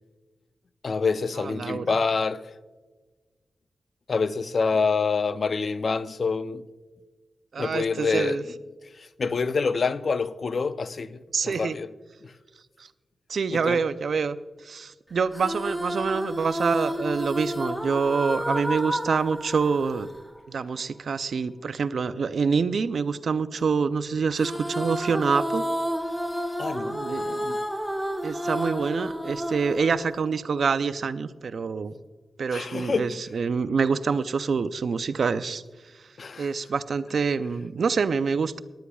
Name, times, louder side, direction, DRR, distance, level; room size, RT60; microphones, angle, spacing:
voice 1, 0.8-2.4 4.1-6.6 7.6-8.4 9.0-11.9 12.2-12.3 13.5-13.8 26.6-27.0 27.2-27.6 32.5-33.2 36.2-36.5, left 4 dB, 65° left, 0.5 m, -27 dB
voice 2, 1.4-2.0 7.5-8.4 11.3-11.8 12.8-12.9 13.3-14.4 14.6-20.1 20.5-25.6 26.9-27.4 28.2-31.9 32.4-35.6 36.4-38.6, right 5 dB, 75° right, 0.5 m, -26 dB
sound 1, 15.3-20.9 24.4-30.8, equal, ahead, 1.2 m, -31 dB
19.5 x 11.5 x 2.3 m
cardioid pair, 50°, 0 cm